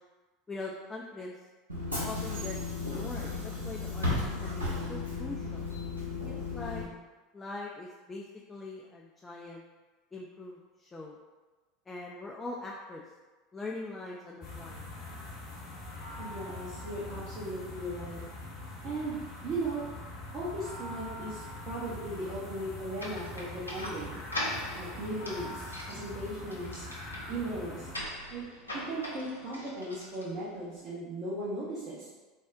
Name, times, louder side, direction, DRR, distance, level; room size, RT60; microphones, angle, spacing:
voice 1, 0.5-1.3 2.0-5.6 6.5-6.8 7.3-8.2 8.5-9.6 10.1-11.2 11.9-13.0 13.5-14.9, left 2 dB, 15° left, -3 dB, 0.3 m, -42 dB
Bus / Engine, 1.7-6.8, left 3 dB, 85° right, 0.6 m, -34 dB
sound 1, 14.4-27.9, left 2 dB, 55° left, 0.7 m, -43 dB
voice 2, 16.2-18.2 18.8-19.2 19.4-19.8 20.3-24.2 24.8-26.9 27.3-27.9 28.3-32.1, right 1 dB, 40° right, -9 dB, 0.7 m, -37 dB
sound 2, 23.0-30.6, left 1 dB, 85° left, 0.5 m, -41 dB
3.5 x 2.0 x 2.5 m, 1.2 s
figure-of-eight pair, 75°, 0 cm